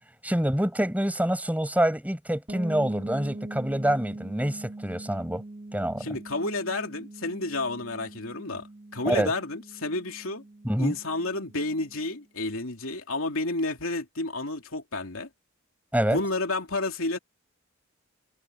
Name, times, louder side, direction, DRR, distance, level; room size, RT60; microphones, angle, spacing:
voice 1, 0.2-5.4 5.7-6.1 9.0-9.3 10.6-10.9 15.9-16.2, right 1 dB, 5° right, 6.5 m, -26 dB
sound 1, 2.5-12.2, right 2 dB, 30° right, 2.5 m, -42 dB
voice 2, 6.0-8.7 8.9-10.4 10.8-15.3 16.1-17.2, left 2 dB, 75° left, 3.0 m, -30 dB
head